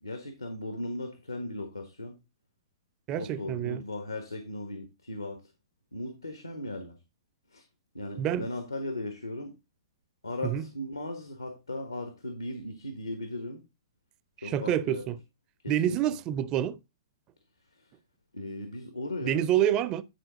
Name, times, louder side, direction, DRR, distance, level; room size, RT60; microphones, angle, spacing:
voice 1, 0.0-2.2 3.2-5.5 5.9-7.0 7.5-7.6 7.9-9.6 10.2-13.6 14.4-15.0 15.6-16.0 17.8-17.9 18.3-19.5, left 1 dB, 85° left, 1.4 m, -37 dB
voice 2, 3.1-3.8 8.2-8.5 10.4-10.7 14.4-15.2 15.7-16.8 19.2-20.0, right 11 dB, 30° right, 0.5 m, -27 dB
9.9 x 4.5 x 3.9 m
figure-of-eight pair, 110°, 2 cm